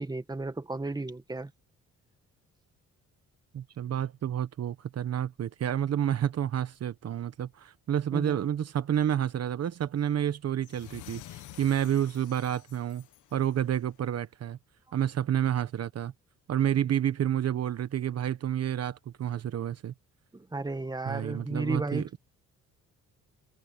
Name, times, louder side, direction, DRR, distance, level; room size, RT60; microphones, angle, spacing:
voice 1, 0.0-1.5 8.1-8.4 20.3-22.2, right 2 dB, 15° right, 1.7 m, -34 dB
voice 2, 3.5-13.0 13.3-14.6 14.9-16.1 16.5-19.9 21.1-22.0, right 10 dB, 55° right, 1.1 m, -29 dB
sound 1, 10.6-13.9, left 15 dB, 80° left, 1.2 m, -49 dB
cardioid pair, 90°, 30 cm